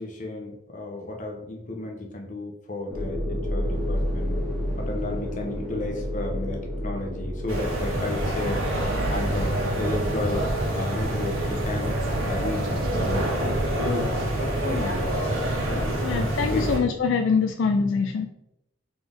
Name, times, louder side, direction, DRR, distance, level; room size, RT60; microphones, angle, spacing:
voice 1, 0.0-4.4 4.8-10.4 10.7-15.1 15.7-16.3 16.5-16.7, left 2 dB, 40° left, 1 dB, 0.8 m, -33 dB
sound 1, 2.9-12.6, equal, 5° left, 1.3 m, -32 dB
sound 2, 7.5-16.8, right 1 dB, 90° right, 1.3 m, -26 dB
sound 3, 8.4-13.6, right 2 dB, 45° right, 0.5 m, -40 dB
voice 2, 16.0-18.3, left 5 dB, 70° left, 6 dB, 0.3 m, -24 dB
4.0 x 3.8 x 3.5 m, 0.82 s
head